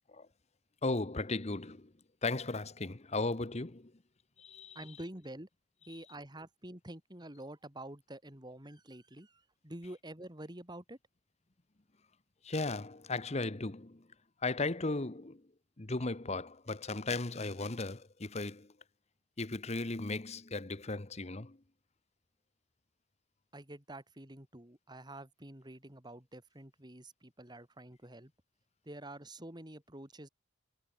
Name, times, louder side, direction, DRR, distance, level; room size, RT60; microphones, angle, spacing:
voice 1, 0.8-1.9 2.2-3.9 4.4-4.8 12.4-14.1 14.4-15.5 15.8-18.7 19.4-21.6, left 3 dB, 35° left, 1.0 m, -36 dB
voice 2, 4.7-5.5 5.9-11.0 23.5-28.3 28.8-30.3, right 1 dB, 20° right, 2.6 m, -48 dB
head